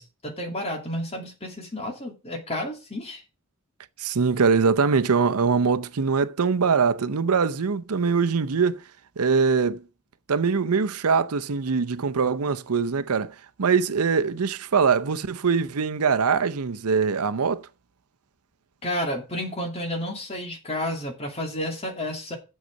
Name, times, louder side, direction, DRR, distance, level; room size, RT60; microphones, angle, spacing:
voice 1, 0.0-3.2 18.8-22.4, left 1 dB, 25° left, 2.6 m, -31 dB
voice 2, 4.0-8.8 9.2-9.8 10.3-17.7, right 5 dB, 85° right, 0.6 m, -23 dB
8.0 x 6.5 x 6.4 m
head